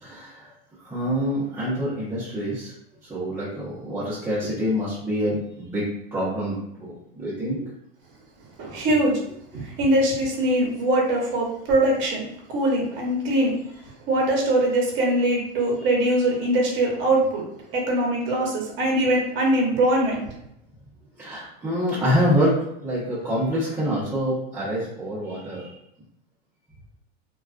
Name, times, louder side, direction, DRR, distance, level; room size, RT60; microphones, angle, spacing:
voice 1, 0.0-0.5 0.8-2.7 3.0-5.8 6.1-7.7 8.9-9.0 21.2-25.8, equal, 10° right, -11 dB, 0.6 m, -26 dB
voice 2, 8.6-9.2 9.5-12.2 12.5-13.6 14.1-17.4 17.7-20.2, right 1 dB, 40° right, -1 dB, 0.8 m, -22 dB
2.3 x 2.2 x 2.4 m, 0.77 s
supercardioid pair, 140°, 30 cm